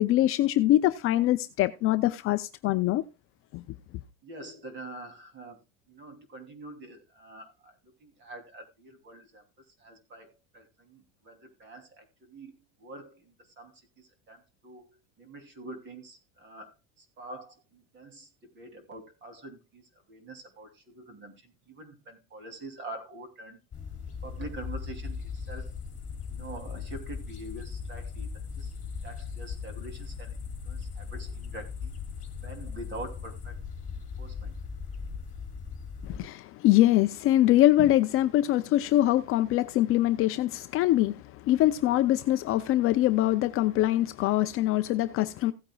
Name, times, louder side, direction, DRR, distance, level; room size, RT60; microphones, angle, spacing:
voice 1, 0.0-3.0 3.5-3.6 36.0-45.5, left 14 dB, 40° left, 0.5 m, -23 dB
voice 2, 4.2-5.6 5.9-23.6 24.2-25.7 26.3-28.7 29.0-31.9 32.4-33.6 34.0-34.6, right 2 dB, 30° right, 3.0 m, -45 dB
sound 1, 23.7-36.2, left 5 dB, 20° left, 2.6 m, -38 dB
16.5 x 8.9 x 2.3 m
supercardioid pair, 145°, 35 cm